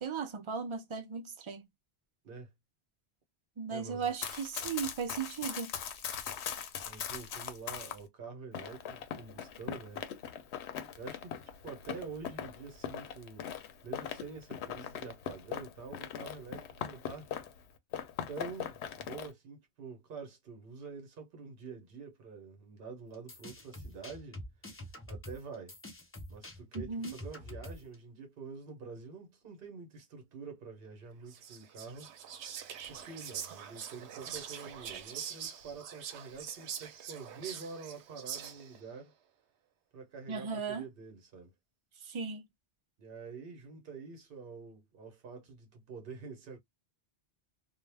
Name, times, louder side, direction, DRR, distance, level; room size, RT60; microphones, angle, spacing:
voice 1, 0.0-1.6 3.6-5.7 26.7-27.1 40.3-40.8 42.1-42.4, right 6 dB, 40° right, 0.4 m, -36 dB
voice 2, 3.7-4.1 6.8-10.0 11.0-13.5 13.8-17.3 18.3-24.4 24.7-24.8 25.1-25.8 26.3-32.1 32.9-39.1 39.9-41.5 43.0-46.6, right 5 dB, 60° right, 1.0 m, -47 dB
Run, 4.0-8.0 8.5-17.6 17.9-19.3, left 8 dB, 80° left, 0.8 m, -40 dB
sound 1, 23.1-27.9, left 1 dB, 20° left, 0.4 m, -46 dB
Whispering, 31.3-38.8, right 8 dB, 85° right, 0.9 m, -44 dB
2.3 x 2.1 x 3.2 m
omnidirectional pair, 1.1 m